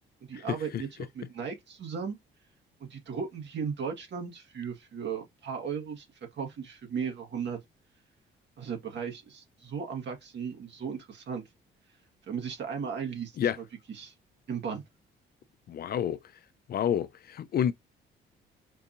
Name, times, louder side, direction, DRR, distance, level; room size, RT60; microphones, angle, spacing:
voice 1, 0.3-2.2 2.8-6.1 6.3-7.6 8.6-11.4 12.3-14.1 14.5-14.8, right 6 dB, 65° right, 1.6 m, -36 dB
voice 2, 15.7-16.2 16.7-17.7, left 9 dB, 50° left, 0.4 m, -29 dB
4.5 x 2.8 x 2.5 m
cardioid pair, 90°, 20 cm